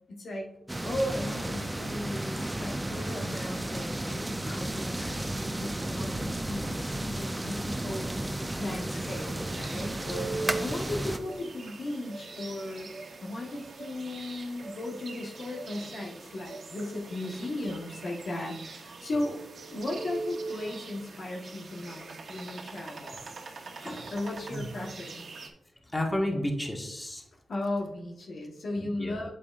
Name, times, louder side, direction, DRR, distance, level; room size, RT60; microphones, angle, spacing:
voice 1, 0.1-0.5 0.8-8.1 8.6-12.9 13.2-19.4 19.7-23.2 24.1-25.2 27.5-29.3, left 1 dB, 65° left, -1 dB, 1.3 m, -36 dB
sound 1, 0.7-11.2, right 1 dB, 15° right, 0.6 m, -33 dB
sound 2, 9.0-25.5, right 3 dB, 65° right, 1.2 m, -42 dB
voice 2, 25.9-27.2 28.8-29.1, left 1 dB, 20° left, 1 dB, 1.6 m, -31 dB
8.3 x 6.9 x 2.5 m, 0.87 s
cardioid pair, 50°, 0 cm